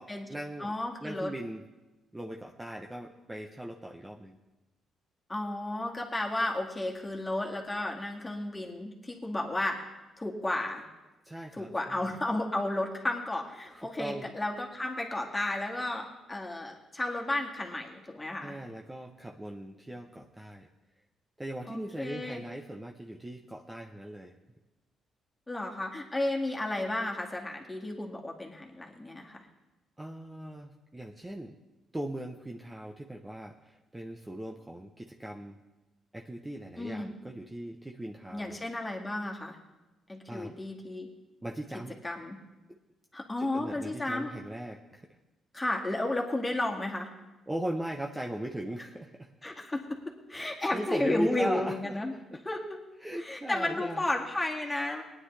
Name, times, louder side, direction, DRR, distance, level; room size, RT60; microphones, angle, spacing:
voice 1, 0.0-0.7 1.0-1.6 2.1-4.4 11.2-12.1 13.7-14.3 18.4-20.7 21.4-24.3 30.0-31.6 31.9-35.6 36.1-38.6 40.3-40.6 41.4-42.0 42.7-42.8 43.4-45.1 47.5-49.3 50.3-52.4 53.0-54.1, right 1 dB, 10° right, 1 dB, 0.8 m, -39 dB
voice 2, 0.6-1.3 5.3-9.8 10.2-10.8 11.6-18.5 21.7-22.4 25.5-29.4 36.8-37.1 38.3-39.6 40.1-41.1 41.7-42.4 43.1-44.3 45.5-47.1 49.4-50.0 50.3-52.1 52.4-52.8 53.2-55.0, left 2 dB, 15° left, 0 dB, 2.1 m, -33 dB
19.0 x 9.8 x 3.3 m, 1.1 s
cardioid pair, 90°, 0 cm